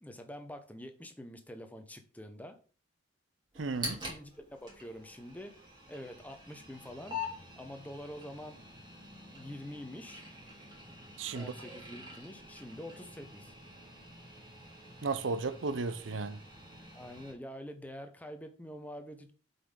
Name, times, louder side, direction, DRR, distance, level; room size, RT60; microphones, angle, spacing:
voice 1, 0.0-2.6 3.9-5.5 5.9-7.2 7.6-8.6 9.3-10.2 11.3-13.5 16.9-19.3, equal, 10° left, 0.8 m, -46 dB
sound 1, 3.5-17.3, left 2 dB, 20° right, 2.8 m, -47 dB
voice 2, 3.6-4.0 11.2-11.5 15.0-16.4, right 4 dB, 75° right, 0.6 m, -34 dB
7.7 x 5.4 x 3.8 m
head